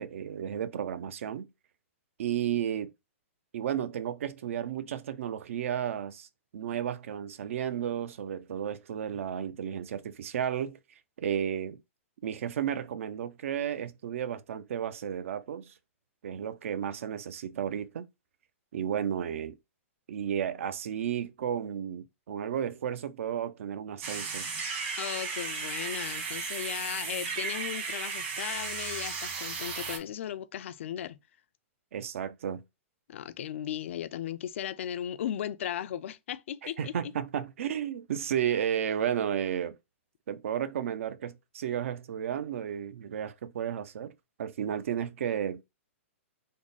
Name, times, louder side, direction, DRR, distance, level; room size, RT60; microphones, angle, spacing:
voice 1, 0.0-1.5 2.2-2.9 3.5-6.3 6.5-10.8 11.2-11.8 12.2-15.7 16.2-18.1 18.7-19.6 20.1-24.5 31.9-32.6 36.6-39.8 40.3-44.1 44.4-45.6, right 9 dB, 70° right, 0.5 m, -33 dB
sound 1, 24.0-30.0, right 5 dB, 55° right, 1.4 m, -35 dB
voice 2, 25.0-31.2 33.1-36.9, left 10 dB, 65° left, 0.4 m, -36 dB
3.5 x 2.0 x 3.9 m
hypercardioid pair, 160°, 7 cm